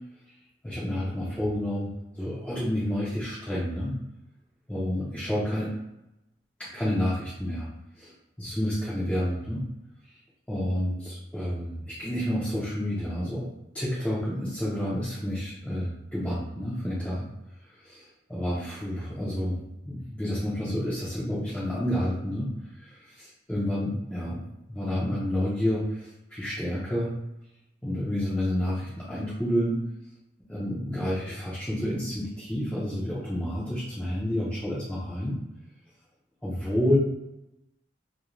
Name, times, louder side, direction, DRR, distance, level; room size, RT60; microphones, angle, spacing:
voice 1, 0.6-4.0 4.7-5.7 6.6-7.7 8.0-8.1 8.4-9.6 10.5-13.5 13.7-17.3 17.6-19.6 19.9-22.5 22.7-24.4 24.7-27.1 27.8-29.8 30.5-35.4 36.4-37.0, equal, 5° left, -10 dB, 0.4 m, -29 dB
2.4 x 2.1 x 2.9 m, 0.90 s
head